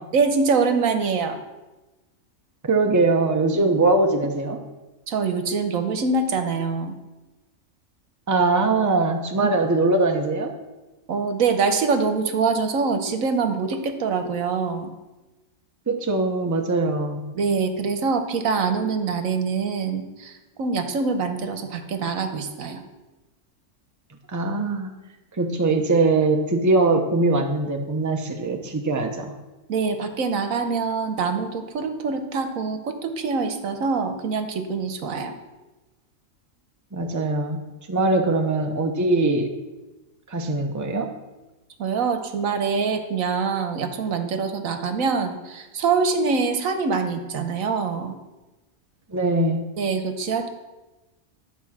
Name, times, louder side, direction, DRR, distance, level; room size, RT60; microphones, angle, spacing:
voice 1, 0.1-1.4 5.1-7.0 11.1-14.9 17.3-22.8 29.7-35.3 41.8-48.2 49.8-50.5, right 5 dB, 80° right, 7 dB, 1.3 m, -24 dB
voice 2, 2.7-4.6 8.3-10.5 15.9-17.2 24.3-24.9 25.4-29.3 36.9-37.6 37.9-39.5 40.3-41.1 49.1-49.6, right 3 dB, 15° right, 3 dB, 0.7 m, -21 dB
11.0 x 4.7 x 7.3 m, 1.1 s
omnidirectional pair, 1.4 m